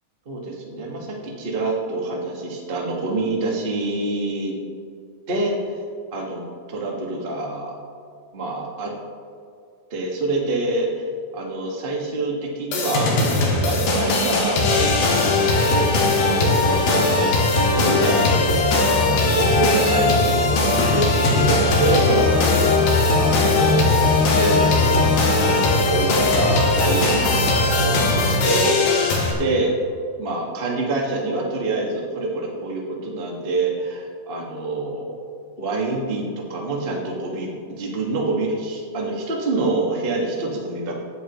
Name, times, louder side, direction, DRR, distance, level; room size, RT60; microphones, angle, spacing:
voice 1, 0.2-4.6 5.3-5.6 6.1-6.4 6.7-7.7 8.3-8.9 9.9-11.0 11.3-29.0 29.4-29.7 30.2-35.3 35.6-40.9, right 2 dB, 90° right, -2 dB, 0.5 m, -26 dB
sound 1, 12.7-29.3, left 3 dB, 75° left, 3.6 m, -19 dB
18.5 x 10.5 x 3.1 m, 2.3 s
omnidirectional pair, 4.2 m